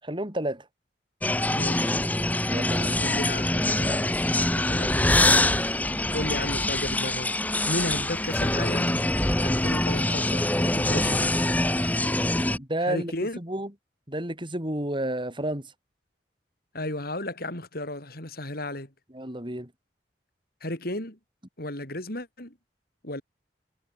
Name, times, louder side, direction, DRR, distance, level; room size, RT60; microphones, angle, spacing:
voice 1, 0.0-0.7 2.5-3.0 12.4-13.7 14.1-15.7 19.1-19.7, right 1 dB, 30° right, 7.9 m, -31 dB
sound 1, 1.2-12.6, left 1 dB, 10° left, 0.9 m, -24 dB
voice 2, 1.5-1.9 3.0-5.5 6.1-9.0 9.4-11.3 12.8-13.4 16.7-18.9 20.6-21.2 21.6-22.6 23.0-23.2, left 1 dB, 60° left, 7.1 m, -34 dB
head